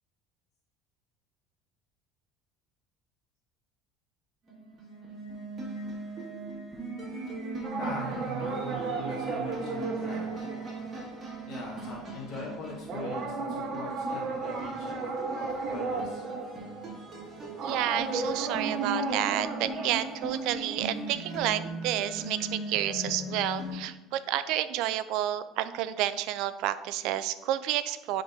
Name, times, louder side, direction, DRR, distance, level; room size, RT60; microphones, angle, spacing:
sound 1, 4.5-23.8, right 2 dB, 25° right, 1.9 m, -39 dB
sound 2, 7.6-11.5 12.1-12.4 12.8-21.5, right 3 dB, 40° right, 1.2 m, -35 dB
voice 1, 7.8-10.3 11.5-16.2, left 2 dB, 50° left, -3 dB, 1.3 m, -42 dB
voice 2, 17.6-28.2, right 12 dB, 65° right, 14 dB, 0.4 m, -30 dB
10.0 x 3.9 x 2.7 m, 1.0 s
cardioid pair, 145°, 0 cm